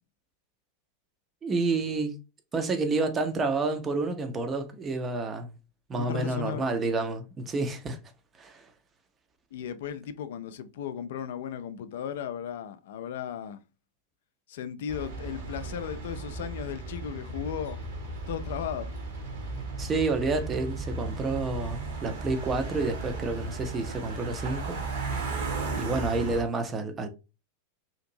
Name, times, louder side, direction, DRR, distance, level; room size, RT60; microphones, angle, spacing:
voice 1, 1.4-2.2 2.5-5.5 5.9-8.0 8.4-8.7 19.8-24.8 25.8-27.1, right 3 dB, 20° right, 0.5 m, -29 dB
voice 2, 5.9-6.8 9.5-13.6 14.5-17.8 18.3-18.9, left 9 dB, 55° left, 0.3 m, -36 dB
sound 1, 14.9-26.4, right 3 dB, 55° right, 1.0 m, -35 dB
2.8 x 2.5 x 2.6 m
figure-of-eight pair, 90°, 0 cm